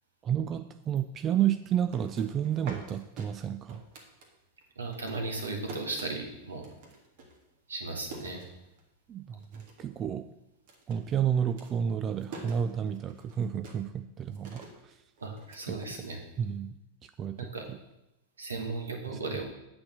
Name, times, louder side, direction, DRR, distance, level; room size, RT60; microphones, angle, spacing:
voice 1, 0.2-3.8 9.1-10.3 10.9-15.0 15.7-15.8 16.4-16.8 17.0-17.8 19.1-19.4, right 9 dB, 25° right, 11 dB, 0.4 m, -31 dB
sound 1, 1.7-4.6 4.9-9.1 9.4-10.0 10.3-16.5, right 3 dB, 50° right, 1.6 m, -48 dB
voice 2, 4.7-6.6 7.7-8.4 15.2-16.2 17.4-17.7 18.4-19.4, right 3 dB, 75° right, 3 dB, 1.6 m, -36 dB
8.6 x 4.3 x 7.3 m, 0.89 s
figure-of-eight pair, 90°, 0 cm